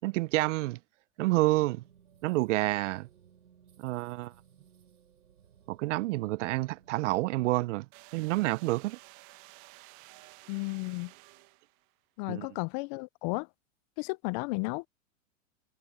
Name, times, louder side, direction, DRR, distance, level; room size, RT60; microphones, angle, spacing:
voice 1, 0.0-0.8 1.2-1.8 2.2-3.1 3.8-4.3 5.7-7.9 8.1-9.0 12.3-12.5, right 19 dB, 60° right, 0.6 m, -28 dB
sound 1, 1.3-7.5, right 8 dB, 90° right, 4.9 m, -61 dB
sound 2, 7.9-11.9, right 23 dB, 40° right, 1.5 m, -53 dB
voice 2, 10.5-11.1 12.2-13.5 14.0-14.9, left 28 dB, 35° left, 0.4 m, -33 dB
hypercardioid pair, 120°, 42 cm